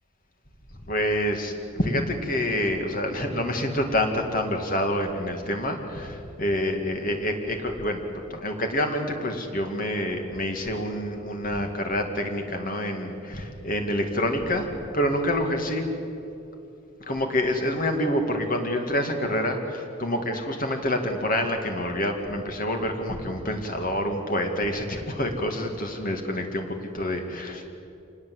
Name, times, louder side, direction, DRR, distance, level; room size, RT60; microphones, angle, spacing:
voice 1, 0.9-8.0 8.3-14.7 14.9-15.9 17.0-27.7, left 1 dB, 45° left, 4 dB, 2.4 m, -27 dB
26.5 x 19.5 x 8.0 m, 2.8 s
head